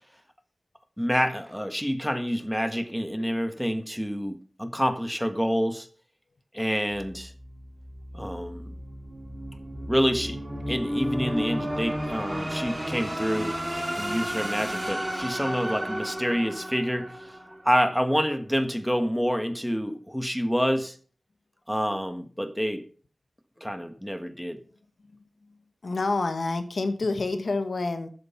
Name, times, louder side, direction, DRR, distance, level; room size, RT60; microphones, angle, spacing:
voice 1, 1.0-5.9 6.5-7.3 8.1-8.8 9.9-10.4 10.7-17.4 17.6-21.0 21.7-22.8 23.6-24.6, equal, ahead, 1.5 m, -27 dB
sound 1, 7.0-18.0, equal, 15° right, 4.4 m, -33 dB
voice 2, 25.8-28.1, left 3 dB, 85° left, 1.5 m, -27 dB
14.0 x 7.9 x 5.8 m
wide cardioid pair, 75°, 0 cm